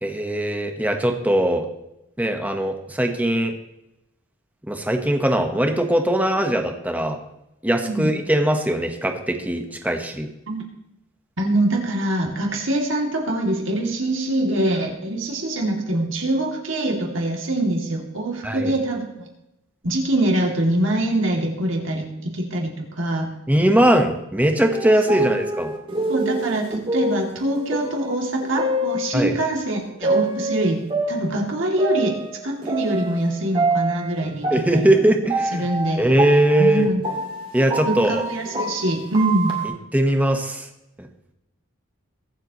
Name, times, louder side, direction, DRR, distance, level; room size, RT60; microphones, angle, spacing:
voice 1, 0.0-1.6 2.2-3.5 4.6-7.2 7.6-10.3 18.4-18.7 23.5-25.7 29.1-29.3 34.5-35.7 36.0-36.9 37.5-38.2 39.6-40.7 41.0-41.1, right 1 dB, 5° right, 4 dB, 1.1 m, -20 dB
voice 2, 7.8-8.2 10.5-10.6 11.4-19.3 19.8-23.3 25.1-25.3 26.1-30.8 31.1-32.2 32.4-34.9 35.5-36.0 36.6-37.0 37.9-39.6, right 1 dB, 60° right, 0 dB, 2.6 m, -24 dB
sound 1, 24.7-29.5 30.0-33.3 33.5-39.7, right 2 dB, 25° right, 2.2 m, -26 dB
22.5 x 7.8 x 3.1 m, 0.88 s
head